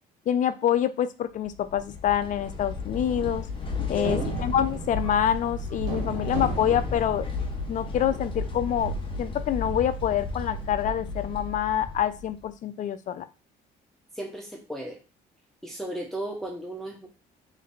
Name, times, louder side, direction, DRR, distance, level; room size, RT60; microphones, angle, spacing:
voice 1, 0.3-3.4 3.9-7.3 7.7-8.9 9.2-13.2, left 10 dB, 50° left, 12 dB, 0.5 m, -26 dB
sound 1, 1.4-12.5, left 2 dB, 30° left, 0.9 m, -33 dB
sound 2, 3.1-7.9, right 6 dB, 90° right, 1.1 m, -38 dB
voice 2, 3.9-4.3 14.1-15.0 15.6-17.1, right 1 dB, ahead, 0 dB, 0.7 m, -35 dB
3.2 x 3.2 x 3.9 m, 0.31 s
cardioid pair, 110°, 17 cm